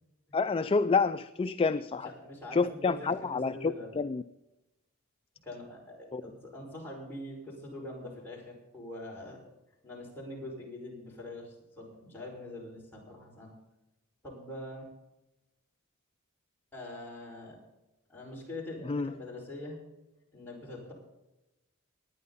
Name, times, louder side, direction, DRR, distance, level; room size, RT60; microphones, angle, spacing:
voice 1, 0.3-2.1 2.5-4.2 6.1-6.2 18.8-19.1, left 4 dB, 25° left, 11 dB, 0.4 m, -28 dB
voice 2, 2.0-4.0 5.4-9.4 9.8-13.5 14.2-14.9 16.7-17.6 18.1-19.8 20.3-20.9, left 1 dB, 10° left, -4 dB, 5.2 m, -44 dB
21.0 x 9.6 x 4.1 m, 0.97 s
head